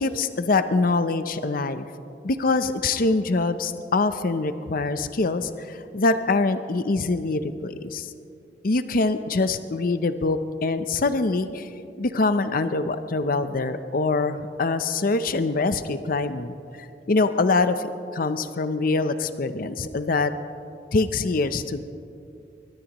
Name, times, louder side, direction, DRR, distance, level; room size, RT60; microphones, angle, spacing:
voice 1, 0.0-1.9 2.2-8.1 8.6-11.7 12.0-16.6 17.1-20.3 20.9-21.9, left 3 dB, 55° left, 11 dB, 0.6 m, -24 dB
22.0 x 20.0 x 3.0 m, 2.6 s
head